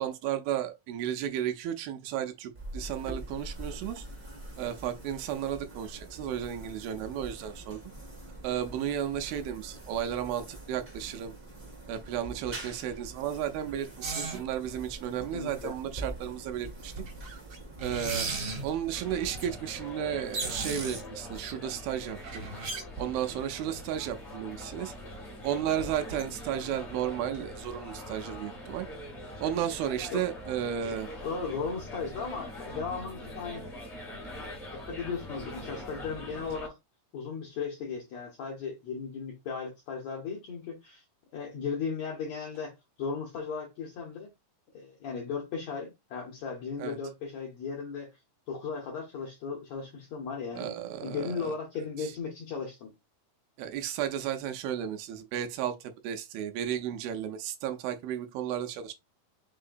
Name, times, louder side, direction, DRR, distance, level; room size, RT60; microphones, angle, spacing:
voice 1, 0.0-4.1 4.6-7.8 8.4-11.3 11.9-16.9 17.8-18.3 18.6-22.5 23.0-24.9 25.4-28.9 29.4-31.1 46.8-47.0 50.6-51.5 52.0-52.1 53.6-58.9, right 10 dB, 80° right, 2.4 m, -33 dB
sound 1, 2.5-19.9, right 1 dB, 40° right, 0.7 m, -45 dB
sound 2, 14.0-14.4 15.2-15.3 16.2-16.3 16.7-18.7 19.3-19.5 19.9-20.0 20.2-21.5 22.1-23.3 23.7-23.8 24.1-24.2 25.1-25.2 25.4-25.5 25.8-26.2 26.6-27.1 27.3-27.4, right 4 dB, 60° right, 1.5 m, -36 dB
voice 2, 15.3-15.8 30.1-30.2 31.2-33.6 34.7-36.8 37.1-41.0 41.3-42.7 43.0-44.3 44.7-48.1 48.5-50.8 51.0-52.9, left 5 dB, 75° left, 1.6 m, -36 dB
sound 3, 18.9-36.7, left 1 dB, 20° left, 1.0 m, -43 dB
5.6 x 3.7 x 2.5 m
omnidirectional pair, 4.4 m